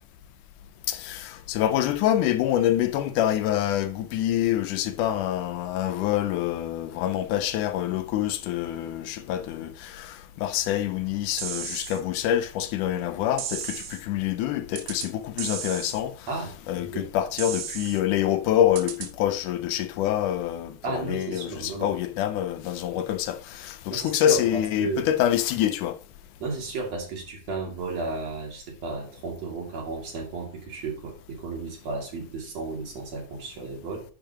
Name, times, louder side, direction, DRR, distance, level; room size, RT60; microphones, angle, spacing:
voice 1, 0.9-16.1 16.7-25.9, left 11 dB, 80° left, 2.2 m, -26 dB
sound 1, 11.4-12.0 13.4-14.0 14.8-15.1 15.4-16.0 17.4-18.0 18.8-19.1, right 9 dB, 90° right, 2.4 m, -34 dB
voice 2, 20.8-21.9 23.9-25.1 26.4-34.0, right 3 dB, 55° right, 3.5 m, -33 dB
10.5 x 7.0 x 2.9 m
omnidirectional pair, 3.6 m